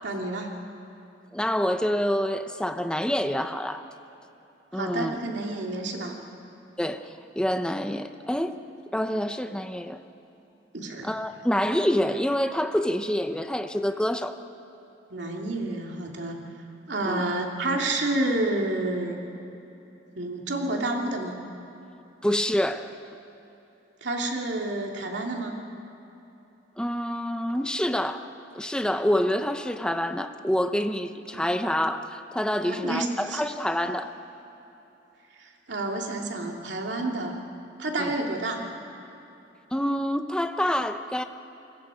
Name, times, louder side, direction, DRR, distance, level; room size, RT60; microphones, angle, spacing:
voice 1, 0.0-0.5 4.7-6.2 10.7-11.1 15.1-16.4 16.9-19.2 20.1-21.4 24.0-25.6 31.3-31.5 32.6-33.4 35.4-37.4 37.8-38.6, right 2 dB, 70° right, 1 dB, 2.8 m, -29 dB
voice 2, 1.3-3.8 4.7-5.2 6.8-7.0 7.4-8.6 8.9-10.0 11.0-14.3 17.1-17.2 22.2-22.9 26.8-28.3 28.5-34.1 38.0-38.1 39.7-41.2, equal, 5° left, 8 dB, 0.8 m, -27 dB
27.0 x 22.5 x 5.1 m, 3.0 s
head